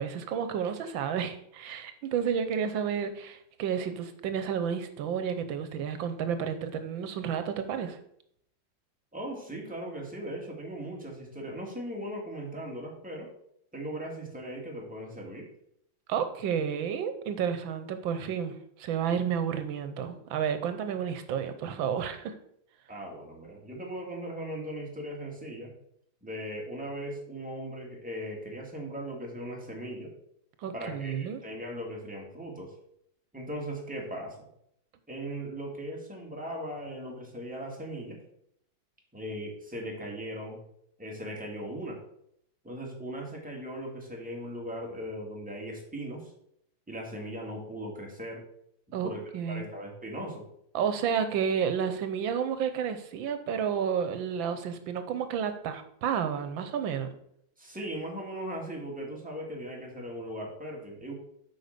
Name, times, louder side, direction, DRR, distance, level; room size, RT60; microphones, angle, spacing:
voice 1, 0.0-8.0 16.1-22.3 30.6-31.4 48.9-49.7 50.7-57.1, right 7 dB, 80° right, 9 dB, 1.5 m, -31 dB
voice 2, 9.1-13.3 13.7-15.5 22.9-25.7 26.2-30.1 30.7-32.7 33.3-34.5 35.1-38.2 39.1-40.6 41.0-42.0 42.6-46.3 46.9-48.4 49.0-50.4 57.6-61.1, equal, 5° right, -1 dB, 2.1 m, -38 dB
8.4 x 5.1 x 6.7 m, 0.73 s
omnidirectional pair, 2.1 m